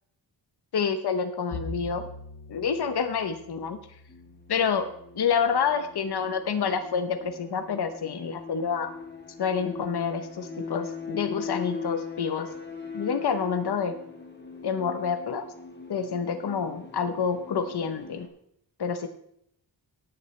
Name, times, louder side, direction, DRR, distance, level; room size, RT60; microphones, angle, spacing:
voice 1, 0.7-2.1 2.5-3.8 4.5-4.9 5.2-8.9 9.4-12.5 12.9-13.9 14.6-15.5 15.9-18.3 18.8-19.1, left 6 dB, 60° left, 8 dB, 0.8 m, -28 dB
Bowed string instrument, 1.5-5.9, left 1 dB, 80° left, 1.6 m, -43 dB
sound 1, 4.1-18.3, left 5 dB, 25° left, 1.4 m, -40 dB
16.0 x 8.7 x 3.2 m, 0.73 s
wide cardioid pair, 135°, 44 cm